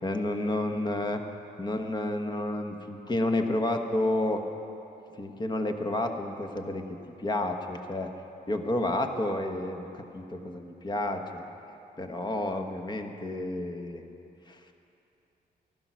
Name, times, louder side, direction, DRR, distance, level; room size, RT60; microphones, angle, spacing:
voice 1, 0.0-1.2 1.6-4.4 5.2-6.8 7.2-8.1 8.5-9.9 10.1-11.4 12.0-14.0 14.5-14.6, left 1 dB, 25° left, 5 dB, 1.2 m, -30 dB
14.5 x 12.5 x 6.2 m, 2.8 s
cardioid pair, 115°, 17 cm